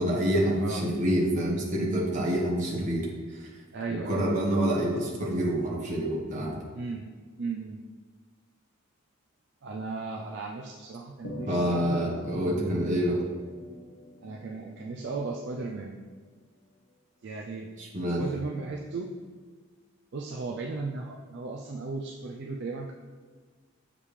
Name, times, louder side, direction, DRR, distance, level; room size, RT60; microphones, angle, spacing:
voice 1, 0.0-3.1 3.4-3.5 3.9-6.6 11.5-13.2 17.8-18.2, equal, 35° right, -3 dB, 1.3 m, -27 dB
voice 2, 3.7-4.3 6.7-7.1 7.4-7.8 9.6-12.1 14.2-16.0 17.2-17.7 18.2-19.1 20.1-22.9, right 3 dB, 55° right, 0 dB, 0.5 m, -36 dB
sound 1, 11.2-15.9, left 1 dB, 80° left, 1.0 m, -43 dB
7.3 x 5.1 x 3.3 m, 1.5 s
head